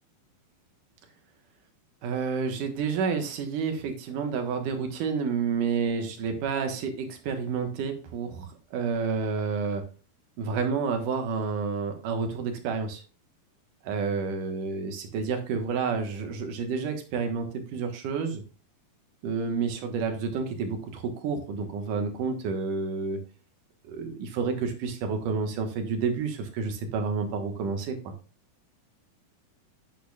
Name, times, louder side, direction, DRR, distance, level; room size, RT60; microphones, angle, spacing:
voice 1, 2.0-9.8 10.4-13.0 13.8-18.4 19.2-23.2 23.9-28.1, right 5 dB, 65° right, 5 dB, 2.7 m, -30 dB
9.0 x 8.5 x 2.4 m, 0.36 s
omnidirectional pair, 4.3 m